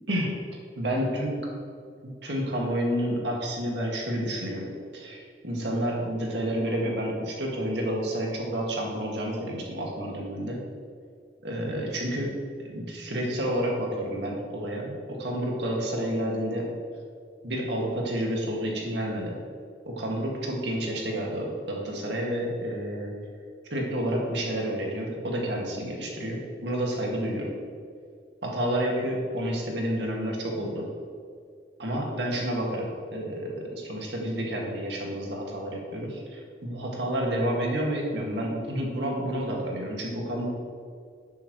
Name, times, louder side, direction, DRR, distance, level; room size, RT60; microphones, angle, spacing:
voice 1, 0.1-1.4 2.2-10.7 11.4-16.7 17.4-19.4 19.9-23.2 23.7-27.6 28.4-30.9 31.8-40.5, equal, 80° right, -1 dB, 1.9 m, -30 dB
11.5 x 8.4 x 3.1 m, 2.3 s
head